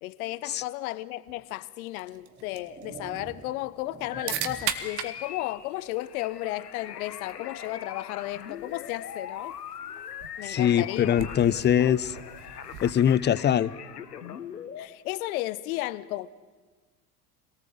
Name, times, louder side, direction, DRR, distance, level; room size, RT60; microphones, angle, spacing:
voice 1, 0.0-9.6 10.4-11.3 14.8-16.3, left 16 dB, 65° left, 0.8 m, -34 dB
sound 1, 1.3-1.4 2.2-4.9, right 5 dB, 20° right, 1.8 m, -46 dB
sound 2, 1.9-13.8, right 10 dB, 60° right, 1.8 m, -41 dB
sound 3, 4.1-14.9, left 8 dB, 85° left, 1.2 m, -41 dB
voice 2, 10.4-12.2 12.8-13.7, left 9 dB, 25° left, 0.6 m, -22 dB
26.0 x 18.5 x 7.8 m
figure-of-eight pair, 70°, 46 cm